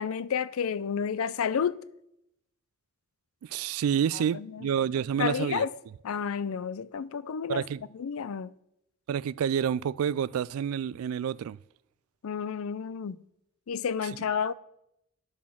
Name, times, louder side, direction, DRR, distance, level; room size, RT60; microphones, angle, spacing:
voice 1, 0.0-1.8 4.1-4.7 5.2-5.7 6.0-7.6 7.9-8.5 12.2-13.2 13.7-14.5, left 7 dB, 80° left, 0.4 m, -31 dB
voice 2, 3.4-5.6 7.5-7.8 9.1-11.6, right 8 dB, 80° right, 0.3 m, -28 dB
10.5 x 6.2 x 5.8 m
head